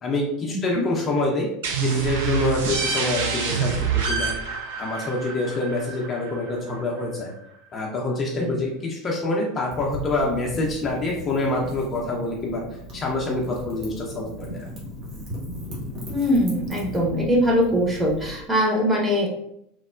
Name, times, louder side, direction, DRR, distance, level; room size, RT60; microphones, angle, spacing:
voice 1, 0.0-1.5 1.8-4.3 4.8-7.3 7.7-12.6 12.9-14.7, left 2 dB, 25° left, -2 dB, 0.5 m, -26 dB
sound 1, 1.6-7.1, right 6 dB, 65° right, 0.4 m, -27 dB
Wind / Fire, 9.7-18.3, equal, 45° right, 1.1 m, -37 dB
voice 2, 16.1-19.3, equal, 10° right, -2 dB, 0.8 m, -21 dB
3.2 x 2.0 x 2.3 m, 0.76 s
figure-of-eight pair, 75°, 0 cm